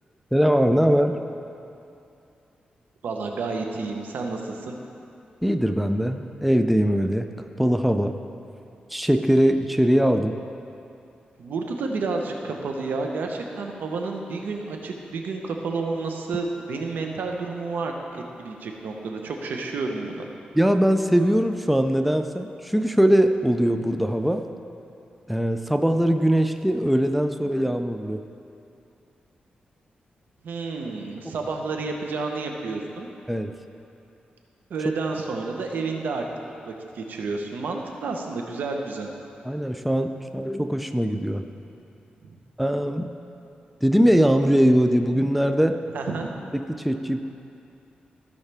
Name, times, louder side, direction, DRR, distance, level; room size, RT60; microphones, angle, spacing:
voice 1, 0.3-1.2 5.4-7.3 7.6-8.2 8.9-10.4 20.5-24.4 25.3-28.2 33.3-33.5 39.4-41.4 42.6-43.1 43.8-45.8 46.5-47.2, equal, ahead, 7 dB, 0.4 m, -21 dB
voice 2, 3.0-4.8 11.4-20.3 30.4-33.1 34.7-36.3 36.6-39.1 42.2-42.3 45.9-46.3, right 3 dB, 80° right, 2 dB, 0.9 m, -30 dB
15.0 x 5.5 x 3.5 m, 2.8 s
cardioid pair, 80°, 3 cm